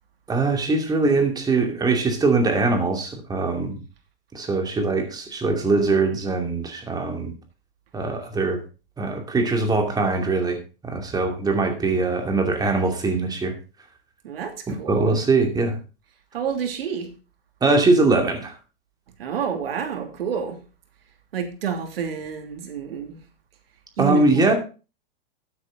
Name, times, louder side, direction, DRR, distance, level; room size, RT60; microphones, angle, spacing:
voice 1, 0.3-3.8 4.3-7.3 7.9-8.6 9.0-10.6 10.8-13.5 14.7-15.8 17.6-18.5 24.0-24.5, right 3 dB, 15° right, 4 dB, 2.5 m, -22 dB
voice 2, 14.2-15.2 16.3-17.1 19.2-20.6 21.3-23.2 24.0-24.5, right 7 dB, 80° right, 5 dB, 2.9 m, -29 dB
12.5 x 8.3 x 4.0 m, 0.33 s
hypercardioid pair, 135°, 29 cm